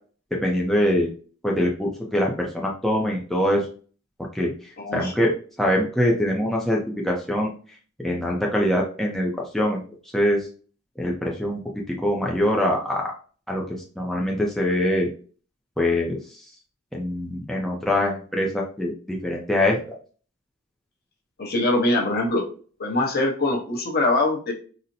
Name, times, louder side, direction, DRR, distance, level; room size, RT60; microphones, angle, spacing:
voice 1, 0.3-1.1 1.4-3.7 4.2-4.5 4.9-7.5 8.0-9.8 10.1-10.4 11.0-11.6 11.9-13.1 13.5-15.1 15.8-16.2 16.9-20.0, left 1 dB, ahead, -2 dB, 0.5 m, -23 dB
voice 2, 4.8-5.1 21.4-22.4 22.8-24.5, left 2 dB, 50° left, 1 dB, 0.9 m, -23 dB
4.0 x 2.1 x 2.6 m, 0.40 s
head